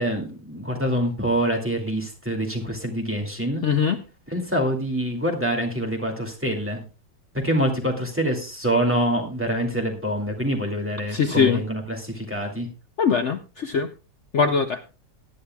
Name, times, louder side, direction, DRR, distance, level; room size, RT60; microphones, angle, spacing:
voice 1, 0.0-3.6 4.3-6.8 7.3-12.7, right 1 dB, 5° right, 1 dB, 2.2 m, -25 dB
voice 2, 3.6-4.0 11.1-11.6 13.0-13.9 14.3-14.8, left 6 dB, 60° left, 8 dB, 0.7 m, -21 dB
19.5 x 10.0 x 2.3 m, 0.31 s
omnidirectional pair, 1.9 m